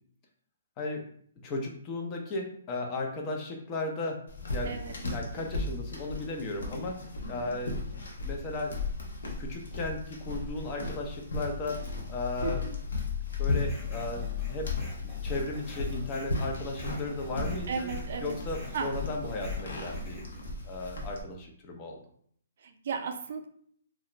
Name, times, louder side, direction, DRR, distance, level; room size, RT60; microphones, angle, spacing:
voice 1, 1.4-4.2 4.5-7.0 7.3-8.8 9.4-12.6 13.4-14.7 15.2-17.9 18.2-20.3 20.6-22.0, left 2 dB, 25° left, 1 dB, 0.5 m, -35 dB
sound 1, 4.3-21.2, left 3 dB, 75° left, 0.7 m, -35 dB
voice 2, 12.4-12.7 17.7-18.3 18.7-18.9 22.6-23.5, right 5 dB, 60° right, 5 dB, 0.4 m, -34 dB
sound 2, 13.5-20.4, equal, 10° left, 1.0 m, -46 dB
2.4 x 2.0 x 2.9 m, 0.63 s
hypercardioid pair, 145°, 0 cm